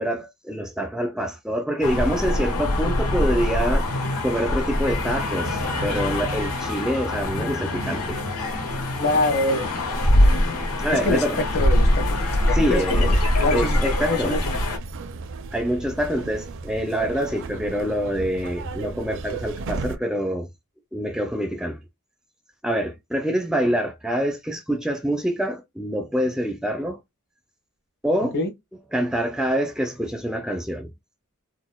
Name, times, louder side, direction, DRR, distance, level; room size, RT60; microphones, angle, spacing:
voice 1, 0.0-3.9 4.2-8.2 10.8-11.4 12.5-13.2 13.5-14.4 15.5-20.5 20.9-21.8 22.6-27.0 28.0-28.4 28.9-30.9, equal, 5° right, 0.4 m, -26 dB
sound 1, 1.8-14.8, left 1 dB, 85° left, 1.8 m, -23 dB
voice 2, 9.0-9.8 11.0-14.6 28.3-28.5, left 2 dB, 50° left, 1.2 m, -25 dB
sound 2, 13.1-20.0, right 4 dB, 60° right, 0.5 m, -35 dB
4.0 x 2.2 x 2.3 m
head